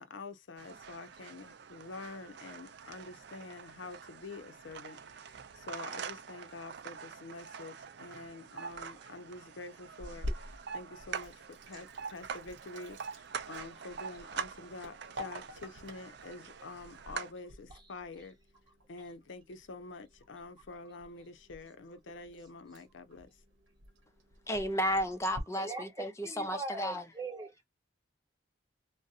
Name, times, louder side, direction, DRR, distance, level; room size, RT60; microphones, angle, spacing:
voice 1, 0.0-18.4 18.9-23.4, left 3 dB, 80° left, 0.6 m, -47 dB
sound 1, 0.6-17.3, right 6 dB, 60° right, 0.4 m, -45 dB
Sink (filling or washing), 10.0-25.4, left 1 dB, 75° right, 0.9 m, -49 dB
voice 2, 24.5-27.0, equal, 15° left, 0.4 m, -33 dB
voice 3, 25.6-27.6, right 3 dB, 20° right, 0.9 m, -41 dB
2.7 x 2.1 x 2.3 m
head